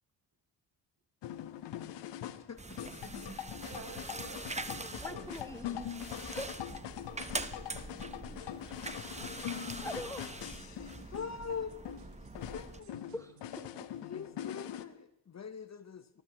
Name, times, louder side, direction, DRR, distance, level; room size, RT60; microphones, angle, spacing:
sound 1, 1.2-14.8, left 11 dB, 75° left, 1.1 m, -43 dB
sound 2, 2.6-12.8, right 3 dB, 15° right, 1.1 m, -44 dB
voice 1, 3.6-5.2 8.4-8.9, right 3 dB, 55° right, -1 dB, 7.5 m, -52 dB
sound 3, 4.1-13.7, right 10 dB, 85° right, 1.3 m, -62 dB
voice 2, 4.9-6.5 9.5-10.2 13.1-13.9, left 1 dB, 5° left, 9 dB, 1.0 m, -44 dB
voice 3, 11.1-12.0 12.4-13.0 14.1-16.2, left 6 dB, 40° left, 11 dB, 1.1 m, -42 dB
24.0 x 15.0 x 3.1 m, 0.80 s
supercardioid pair, 50°, 43 cm